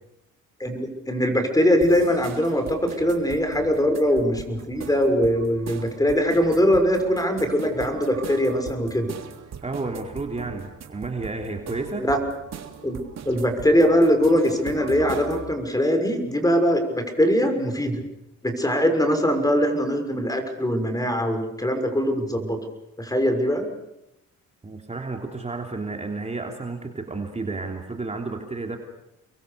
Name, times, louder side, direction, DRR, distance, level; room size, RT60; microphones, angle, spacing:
voice 1, 0.6-9.1 12.0-12.2 12.8-13.0 13.3-18.0 18.4-22.6 23.0-23.7, equal, 10° left, 6 dB, 6.1 m, -22 dB
sound 1, 1.8-15.5, right 7 dB, 60° right, 3.4 m, -40 dB
voice 2, 9.6-12.0 24.6-28.8, right 3 dB, 20° right, 2 dB, 3.3 m, -31 dB
30.0 x 22.5 x 6.9 m, 0.86 s
cardioid pair, 90°, 30 cm